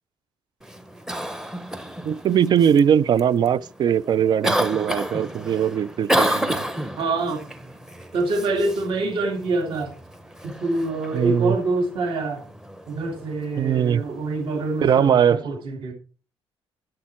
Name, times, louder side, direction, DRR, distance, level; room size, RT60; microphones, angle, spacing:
Cough, 0.6-15.1, equal, 5° right, 0.8 m, -31 dB
voice 1, 2.0-6.7 11.1-11.6 13.6-14.0 14.8-15.4, right 8 dB, 45° right, 0.4 m, -20 dB
voice 2, 7.0-7.4 8.1-9.9 10.4-12.4 12.9-15.9, right 2 dB, 60° right, 2.4 m, -25 dB
11.5 x 7.5 x 4.4 m
cardioid pair, 140°, 10 cm